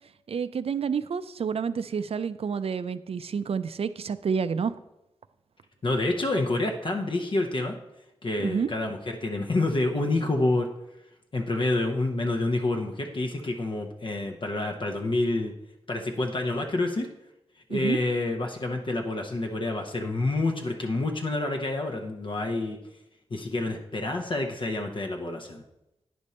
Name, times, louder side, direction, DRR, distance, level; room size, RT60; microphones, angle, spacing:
voice 1, 0.3-4.7 8.4-8.7 17.7-18.0, right 6 dB, 65° right, 13 dB, 0.4 m, -29 dB
voice 2, 5.8-7.8 8.2-10.7 11.3-15.5 15.9-17.1 17.7-22.8 23.3-25.6, left 2 dB, 50° left, 3 dB, 0.8 m, -28 dB
9.4 x 5.2 x 4.2 m, 0.91 s
wide cardioid pair, 75°, 11 cm